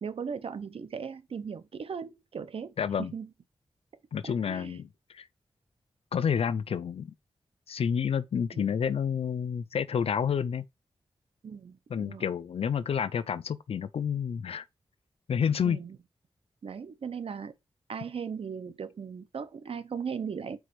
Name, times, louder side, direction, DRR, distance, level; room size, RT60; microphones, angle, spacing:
voice 1, 0.0-2.7 3.0-3.3 4.2-4.8 8.5-8.7 11.4-12.2 15.6-16.0 16.6-17.5 17.9-20.6, right 6 dB, 75° right, 0.8 m, -38 dB
voice 2, 2.8-3.1 4.1-5.3 6.1-7.1 7.7-10.6 11.9-14.6 15.3-15.8, left 7 dB, 80° left, 0.5 m, -29 dB
4.8 x 4.2 x 5.1 m
wide cardioid pair, 75°, 10 cm